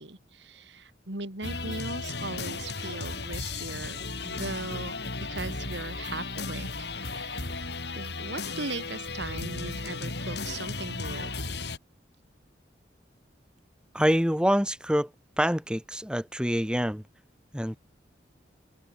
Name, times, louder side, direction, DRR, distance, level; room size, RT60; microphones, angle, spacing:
voice 1, 0.0-5.0 5.3-7.6 8.0-11.3, right 2 dB, 70° right, 3.3 m, -39 dB
sound 1, 1.4-11.8, left 3 dB, 60° left, 4.6 m, -35 dB
voice 2, 13.9-15.1 15.4-17.0 17.5-17.8, equal, 5° right, 7.3 m, -26 dB
open air
head